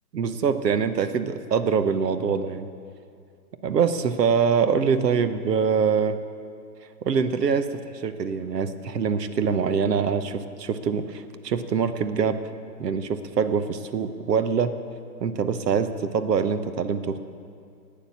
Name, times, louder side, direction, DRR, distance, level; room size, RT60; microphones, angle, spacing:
voice 1, 0.1-2.7 3.6-6.2 7.0-12.4 12.8-14.7 15.2-17.2, right 6 dB, 70° right, 11 dB, 1.1 m, -24 dB
12.0 x 9.0 x 8.5 m, 2.4 s
hypercardioid pair, 175°, 50 cm